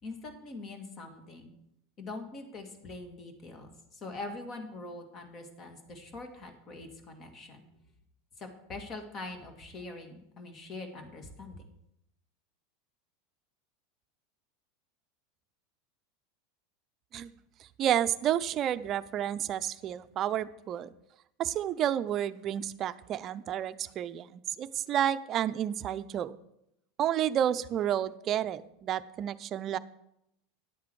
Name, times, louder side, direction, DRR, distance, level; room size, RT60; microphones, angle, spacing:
voice 1, 0.0-1.5 2.0-7.6 8.4-11.6, left 2 dB, 40° left, 5 dB, 2.1 m, -43 dB
voice 2, 17.6-20.9 21.4-26.3 27.0-29.8, right 10 dB, 40° right, 14 dB, 0.5 m, -30 dB
10.5 x 8.2 x 4.8 m, 0.81 s
hypercardioid pair, 95°, 0 cm